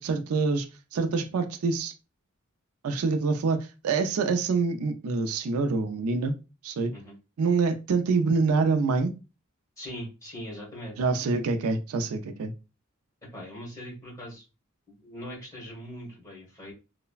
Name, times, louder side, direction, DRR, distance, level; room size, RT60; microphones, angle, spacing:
voice 1, 0.0-1.9 2.8-3.6 3.8-6.4 6.6-6.9 7.4-9.1 11.0-12.5, right 4 dB, 80° right, 0.4 m, -26 dB
voice 2, 9.8-11.0 13.2-14.5 14.9-16.7, equal, 15° left, 1.3 m, -41 dB
3.1 x 2.0 x 2.3 m
head